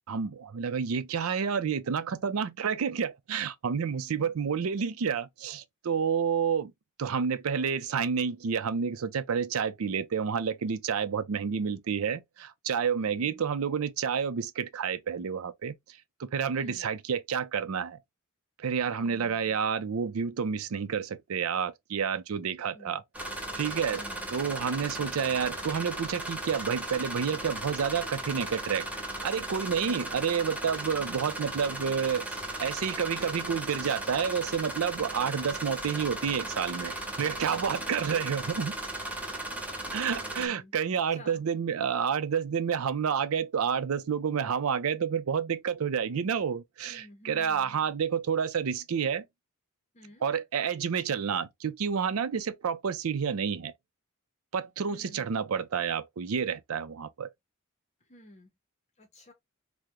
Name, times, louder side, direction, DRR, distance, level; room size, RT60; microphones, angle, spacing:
voice 1, 0.1-6.7 7.0-15.7 16.2-18.0 18.6-23.0 23.6-24.0 24.3-28.9 29.2-32.2 32.6-38.8 39.9-49.2 50.2-53.7 54.5-57.3, right 7 dB, 85° right, 0.5 m, -29 dB
voice 2, 3.9-4.3 13.0-13.4 16.5-16.9 18.9-19.6 22.7-23.0 23.9-24.3 29.7-30.1 37.8-38.1 39.8-41.4 46.9-48.0 49.9-50.3 54.9-55.3 58.0-58.5 59.0-59.3, left 1 dB, 35° left, 0.7 m, -52 dB
sound 1, 23.1-40.5, right 1 dB, 5° right, 0.7 m, -36 dB
3.5 x 2.1 x 2.8 m
head